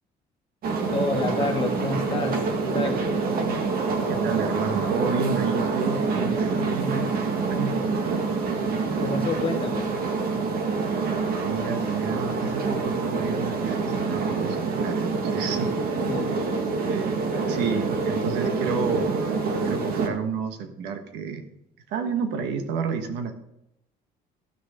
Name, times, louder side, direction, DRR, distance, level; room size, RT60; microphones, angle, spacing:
sound 1, 0.6-20.1, right 4 dB, 65° right, 1.9 m, -26 dB
voice 1, 0.9-3.1 9.0-10.0 16.0-16.6, left 3 dB, 30° left, 3 dB, 1.5 m, -29 dB
voice 2, 4.1-8.2 11.3-15.7 16.9-19.2 19.6-21.5 21.9-23.3, right 5 dB, 90° right, 7 dB, 1.4 m, -30 dB
14.5 x 6.5 x 5.0 m, 0.83 s
cardioid pair, 110°, 17 cm